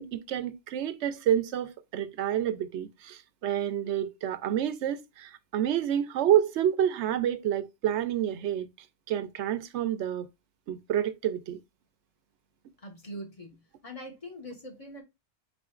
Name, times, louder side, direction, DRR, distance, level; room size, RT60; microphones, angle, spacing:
voice 1, 0.0-8.7 9.1-10.3 10.7-11.6, right 10 dB, 80° right, 0.9 m, -28 dB
voice 2, 12.8-15.0, equal, 30° left, 1.4 m, -43 dB
4.2 x 4.2 x 2.3 m
omnidirectional pair, 1.1 m